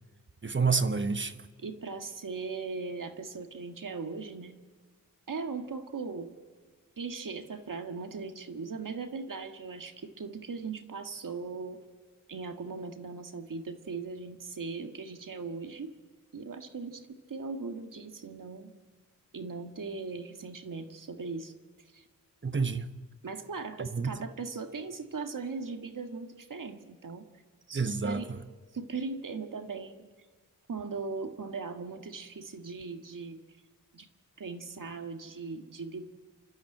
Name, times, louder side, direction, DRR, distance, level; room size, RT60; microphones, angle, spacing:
voice 1, 0.4-1.4 22.4-22.9 23.8-24.1 27.7-28.2, right 4 dB, 35° right, 1.1 m, -29 dB
voice 2, 1.6-4.6 5.3-6.3 7.0-11.8 12.3-15.9 16.3-18.7 19.3-21.5 21.9-22.0 23.2-27.3 27.7-28.3 28.7-30.1 30.7-33.4 33.9-34.1 34.4-36.1, right 4 dB, 70° right, 1.8 m, -39 dB
28.5 x 12.5 x 8.8 m
wide cardioid pair, 65°, 33 cm